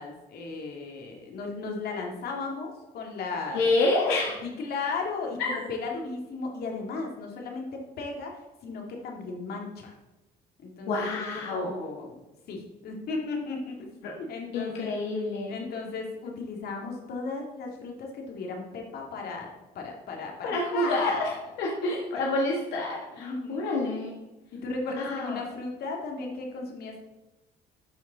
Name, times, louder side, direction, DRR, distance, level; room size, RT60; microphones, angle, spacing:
voice 1, 0.0-3.7 4.4-9.9 10.6-12.2 12.5-13.9 14.2-15.0 15.5-21.4 22.1-22.3 23.1-23.7 24.5-27.0, left 3 dB, 65° left, 1 dB, 2.2 m, -35 dB
voice 2, 3.5-4.4 5.4-5.5 10.9-11.7 14.0-14.1 14.5-15.6 20.4-21.3 21.6-24.1 25.0-25.4, left 2 dB, 85° left, -2 dB, 1.7 m, -28 dB
13.0 x 4.9 x 4.0 m, 1.1 s
cardioid pair, 110°, 17 cm